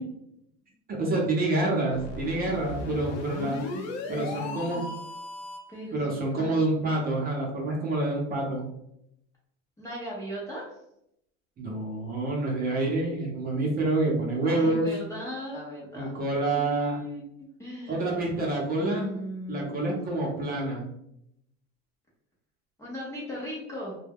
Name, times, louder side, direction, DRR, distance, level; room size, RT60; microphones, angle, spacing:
voice 1, 1.0-3.6 4.1-4.8 5.9-8.7 11.6-14.9 15.9-17.0 17.9-19.1 19.5-20.9, right 2 dB, 25° right, -2 dB, 0.7 m, -27 dB
sound 1, 1.9-5.8, left 3 dB, 55° left, 0.7 m, -37 dB
voice 2, 3.5-4.8 5.7-6.9 9.8-10.8 14.5-17.2 17.6-18.1 18.8-19.9 22.8-24.0, equal, 10° left, -6 dB, 0.5 m, -38 dB
2.3 x 2.0 x 3.4 m, 0.78 s
supercardioid pair, 125°, 34 cm